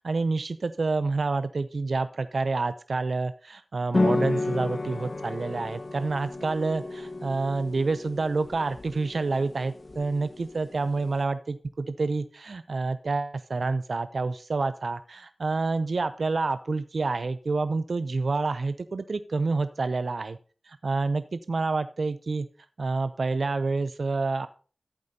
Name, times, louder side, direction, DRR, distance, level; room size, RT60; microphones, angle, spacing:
voice 1, 0.0-20.4 20.6-22.5 22.8-24.5, right 3 dB, 90° right, 11 dB, 0.5 m, -28 dB
sound 1, 3.9-11.2, left 2 dB, 60° left, 1.3 m, -32 dB
14.5 x 8.5 x 2.8 m, 0.39 s
wide cardioid pair, 45°, 0 cm